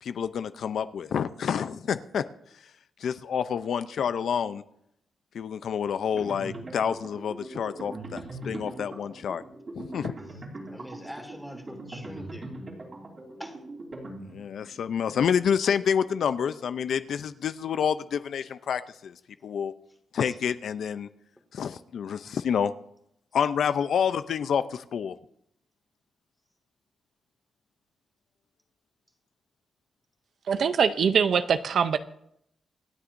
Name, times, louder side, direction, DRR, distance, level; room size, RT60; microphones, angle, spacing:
voice 1, 0.0-2.2 3.0-4.6 5.3-9.4 9.8-10.1 14.3-19.1 19.4-19.7 20.1-21.1 21.5-22.7 23.3-25.2, left 7 dB, 65° left, 12 dB, 0.5 m, -28 dB
sound 1, 6.1-14.7, right 2 dB, 35° right, 3.3 m, -41 dB
voice 2, 10.7-12.6 13.4-13.6 20.2-20.3, equal, ahead, 4 dB, 1.7 m, -43 dB
voice 3, 30.5-32.0, right 6 dB, 55° right, 11 dB, 0.5 m, -23 dB
26.5 x 9.9 x 2.6 m, 0.74 s
wide cardioid pair, 170°, 0 cm